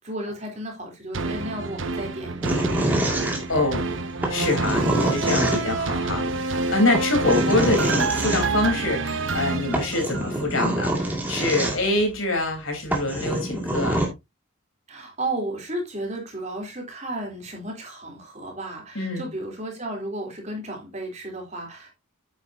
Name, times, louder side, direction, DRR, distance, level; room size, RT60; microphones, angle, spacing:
voice 1, 0.0-2.6 7.2-7.9 11.6-11.8 14.9-21.9, right 1 dB, 35° right, 3.4 m, -33 dB
sound 1, 1.1-10.5 11.0-11.1, right 3 dB, 65° right, 0.9 m, -28 dB
sound 2, 2.4-3.8 4.2-5.9 6.9-8.4 9.4-9.5 9.7-12.0 12.6-12.7 12.9-14.1, right 1 dB, 10° right, 2.2 m, -26 dB
voice 2, 3.5-3.9 4.3-14.0 19.0-19.3, left 2 dB, 75° left, 4.0 m, -25 dB
9.1 x 8.7 x 2.7 m
head